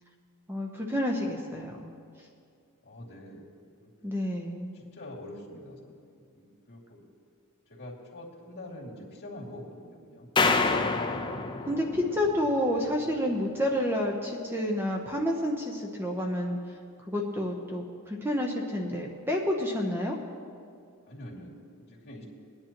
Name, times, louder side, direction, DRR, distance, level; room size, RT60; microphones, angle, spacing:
voice 1, 0.5-1.9 4.0-4.8 11.7-16.6 17.1-20.2, left 1 dB, 10° right, 0 dB, 0.8 m, -29 dB
voice 2, 2.8-3.5 3.8-3.9 4.7-7.0 7.7-10.3 21.1-22.2, left 1 dB, 50° left, -4 dB, 2.5 m, -45 dB
sound 1, 10.4-12.7, left 4 dB, 20° left, 0.7 m, -27 dB
21.0 x 10.0 x 3.0 m, 2.3 s
head